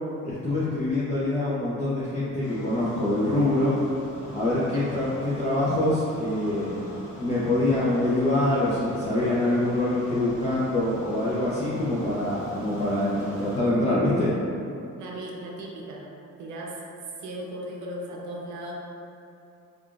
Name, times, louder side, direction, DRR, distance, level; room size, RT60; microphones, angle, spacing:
voice 1, 0.2-3.7 4.3-6.9 7.2-14.3, left 1 dB, 20° left, -9 dB, 0.5 m, -25 dB
sound 1, 2.4-13.6, equal, 80° left, 0.9 m, -42 dB
voice 2, 15.0-16.1 16.4-16.8 17.2-18.7, right 1 dB, 65° right, -2 dB, 0.6 m, -37 dB
3.4 x 2.4 x 2.3 m, 2.6 s
cardioid pair, 95°, 33 cm